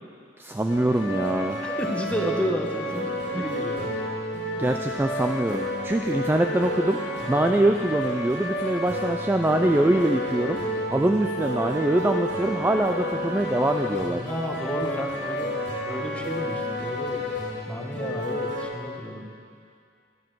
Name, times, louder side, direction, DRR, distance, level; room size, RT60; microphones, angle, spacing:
voice 1, 0.4-1.6 3.3-3.4 4.6-7.0 7.3-10.6 10.9-14.2, right 1 dB, 10° right, 4 dB, 0.3 m, -23 dB
sound 1, 0.7-18.7, left 1 dB, 75° left, 1.8 m, -30 dB
voice 2, 1.6-3.1 3.3-3.9 14.2-15.6 15.9-17.3 17.7-19.3, equal, 5° left, 0 dB, 1.1 m, -31 dB
12.5 x 11.0 x 4.7 m, 2.3 s
head